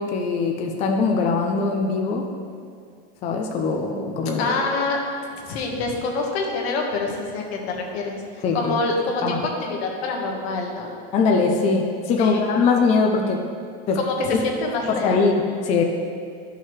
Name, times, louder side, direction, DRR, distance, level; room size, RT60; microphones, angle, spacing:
voice 1, 0.0-2.3 3.2-4.6 8.4-8.8 9.2-9.4 11.1-13.4 13.9-14.0 14.3-14.4 15.0-15.4 15.6-15.8, left 4 dB, 20° left, 2 dB, 0.4 m, -21 dB
voice 2, 4.4-5.0 5.4-10.9 12.2-12.4 13.9-15.3, left 3 dB, 75° left, 0 dB, 1.5 m, -26 dB
12.5 x 5.6 x 3.2 m, 2.3 s
supercardioid pair, 160°, 32 cm